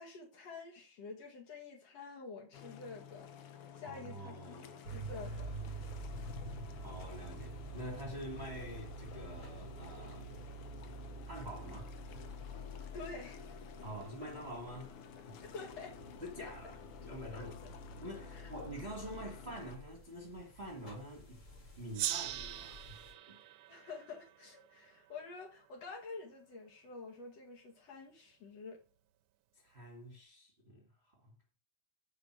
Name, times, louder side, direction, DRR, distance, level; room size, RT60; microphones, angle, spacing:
voice 1, 0.0-3.3 3.7-5.8 12.9-13.6 14.0-14.1 15.4-16.0 16.4-16.5 17.3-17.8 18.3-18.5 23.7-28.8, left 4 dB, 60° left, 3.1 m, -49 dB
sound 1, 2.5-19.8, left 7 dB, 75° left, 1.3 m, -53 dB
voice 2, 3.8-4.7 6.8-10.4 11.3-11.9 13.8-14.9 15.2-15.4 16.2-17.6 17.9-21.4 21.8-23.0 23.3-23.4 29.5-30.9 31.2-31.3, equal, 25° right, 1.5 m, -46 dB
sound 2, 4.8-23.1, right 2 dB, 35° left, 2.5 m, -48 dB
Gong, 21.9-25.1, right 13 dB, 85° right, 2.2 m, -41 dB
9.0 x 4.7 x 6.1 m
omnidirectional pair, 3.5 m